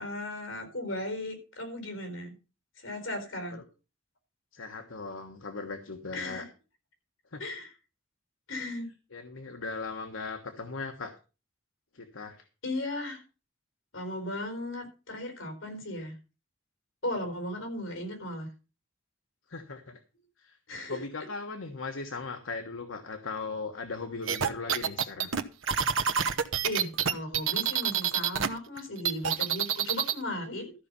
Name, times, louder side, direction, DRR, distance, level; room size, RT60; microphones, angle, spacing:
voice 1, 0.0-2.3 2.8-3.6 6.1-6.5 7.4-7.7 8.5-8.9 12.6-13.2 13.9-16.1 17.0-18.5 20.7-21.0 26.6-30.7, left 1 dB, 70° left, 6 dB, 4.6 m, -36 dB
voice 2, 4.5-6.5 7.3-7.4 9.1-11.1 11.9-12.4 19.5-20.0 20.4-20.6 20.9-25.3, left 4 dB, 90° left, 6 dB, 1.3 m, -38 dB
sound 1, 24.3-28.5 28.8-30.2, right 8 dB, 80° right, 1.0 m, -27 dB
13.5 x 5.6 x 6.9 m, 0.32 s
head